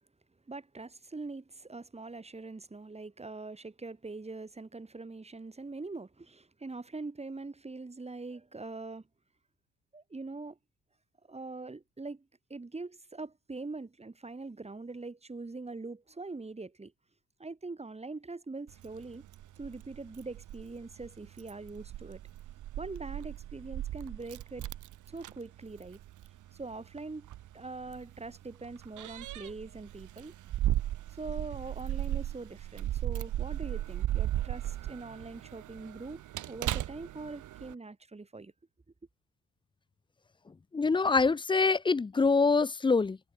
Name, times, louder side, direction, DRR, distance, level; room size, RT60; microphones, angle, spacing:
voice 1, 0.5-9.0 9.9-10.6 11.3-16.9 17.4-19.2 19.6-22.2 22.8-24.7 25.1-26.0 26.5-27.3 27.5-30.3 31.1-36.2 36.5-38.5, right 3 dB, 20° right, 5.1 m, -43 dB
Keys jangling, 18.7-37.7, right 13 dB, 75° right, 2.5 m, -37 dB
voice 2, 40.7-43.2, left 4 dB, 15° left, 0.4 m, -25 dB
cardioid pair, 90°, 30 cm